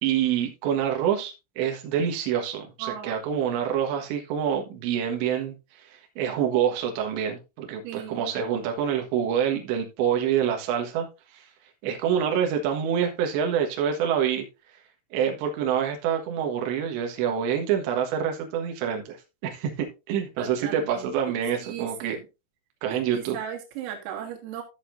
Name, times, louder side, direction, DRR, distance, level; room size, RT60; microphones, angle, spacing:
voice 1, 0.0-5.6 5.9-11.1 11.3-11.4 11.8-14.5 15.1-19.2 19.4-22.2 22.8-23.4, right 8 dB, 65° right, 3.4 m, -26 dB
voice 2, 2.8-3.2 7.8-8.3 20.4-21.3 21.6-22.2 22.9-24.6, right 9 dB, 90° right, 4.6 m, -37 dB
14.0 x 6.8 x 2.6 m
omnidirectional pair, 5.9 m